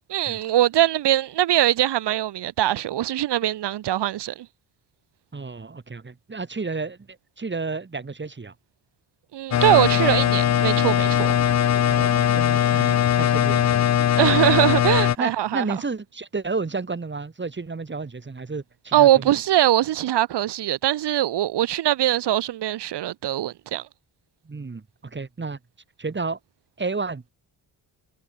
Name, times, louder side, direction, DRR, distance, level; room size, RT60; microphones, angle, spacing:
voice 1, 0.1-4.5 9.3-11.3 14.2-15.7 18.9-23.8, right 13 dB, 60° right, 0.8 m, -22 dB
voice 2, 5.3-7.0 7.4-8.5 11.8-14.1 15.2-19.4 24.4-25.6 26.0-26.4 26.8-27.3, right 4 dB, 25° right, 1.4 m, -31 dB
sound 1, 9.5-15.1, left 10 dB, 35° left, 0.5 m, -20 dB
supercardioid pair, 55°, 46 cm